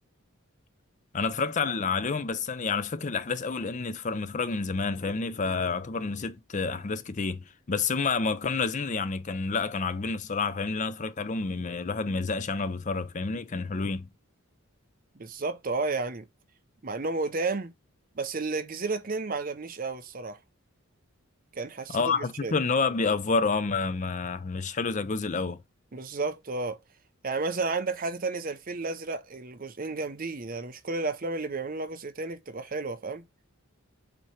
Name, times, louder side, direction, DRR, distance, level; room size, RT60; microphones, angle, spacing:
voice 1, 1.1-14.1 21.9-25.6, left 4 dB, 35° left, 0.5 m, -29 dB
voice 2, 15.2-16.2 16.8-17.7 18.2-20.4 21.5-22.6 25.9-26.8 27.2-33.2, right 3 dB, 40° right, 0.6 m, -32 dB
7.7 x 3.0 x 4.3 m
head